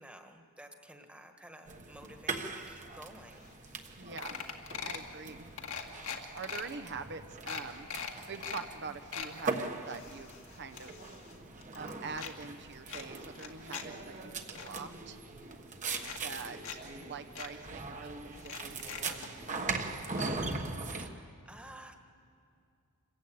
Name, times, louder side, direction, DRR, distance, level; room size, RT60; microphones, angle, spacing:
voice 1, 0.0-3.5 21.0-22.0, right 1 dB, 5° right, 5 dB, 1.6 m, -52 dB
sound 1, 1.7-21.1, right 3 dB, 35° right, 1.3 m, -41 dB
sound 2, 3.5-3.6 3.8-3.9 4.2-5.1 5.6-6.6 7.1-7.2 7.5-8.7 8.9-9.3 9.9-11.4 11.6-12.3 12.9-13.9 14.2-14.7 15.5-15.6 16.0-16.8 17.0-17.1 17.4-17.5 18.4-19.3 20.2-20.3 20.6-20.7, left 7 dB, 70° left, 2.0 m, -41 dB
voice 2, 4.0-4.4 4.8-5.5 6.3-11.0 11.7-15.2 16.2-19.8, right 5 dB, 55° right, 8 dB, 1.0 m, -45 dB
26.5 x 15.5 x 8.8 m, 2.5 s
head